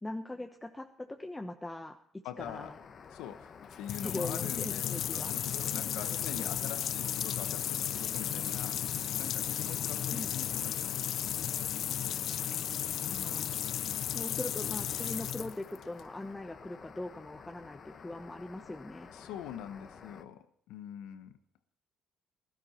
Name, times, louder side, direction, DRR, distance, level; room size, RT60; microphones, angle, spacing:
voice 1, 0.0-2.7 4.0-6.7 10.1-10.3 13.0-13.6 14.1-19.1, left 2 dB, 15° left, 4 dB, 1.1 m, -41 dB
voice 2, 2.2-2.7 3.1-11.4 19.1-21.4, left 10 dB, 80° left, 11 dB, 1.1 m, -44 dB
sound 1, 2.4-20.2, left 6 dB, 50° left, 1.2 m, -52 dB
sound 2, 3.6-16.0, left 10 dB, 65° left, 0.4 m, -34 dB
17.0 x 12.5 x 4.4 m, 0.67 s
supercardioid pair, 70°, 0 cm